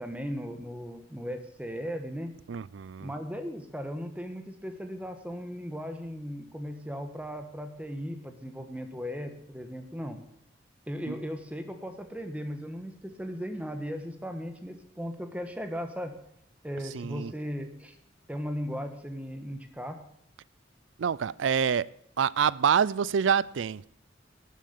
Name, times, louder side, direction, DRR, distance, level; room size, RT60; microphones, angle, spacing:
voice 1, 0.0-2.3 3.0-10.2 10.9-16.1 16.6-18.0 18.3-20.0, equal, 10° right, 1.4 m, -37 dB
voice 2, 2.5-3.1 11.1-11.2 16.9-17.3 21.0-21.9 22.2-23.9, right 7 dB, 90° right, 0.4 m, -26 dB
12.5 x 9.5 x 6.8 m
head